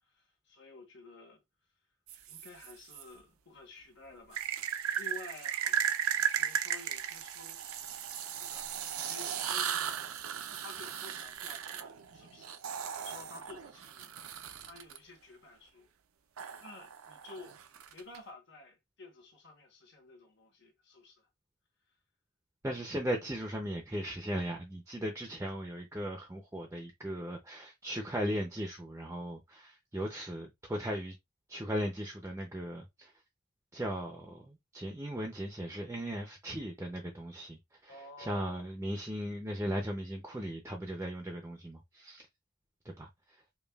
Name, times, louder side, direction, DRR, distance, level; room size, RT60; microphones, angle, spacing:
voice 1, 0.1-1.4 2.3-7.6 8.2-10.0 10.5-12.6 12.9-14.1 14.6-15.9 16.6-17.6 17.9-21.3 37.9-38.7, left 2 dB, 55° left, 1.1 m, -52 dB
sound 1, 2.1-3.0 4.3-15.0 16.4-18.2, right 9 dB, 80° right, 0.5 m, -36 dB
voice 2, 22.6-31.1 31.5-33.1 33.7-37.6 37.8-42.3 42.8-43.4, equal, 10° right, 0.4 m, -37 dB
5.2 x 2.2 x 2.3 m
head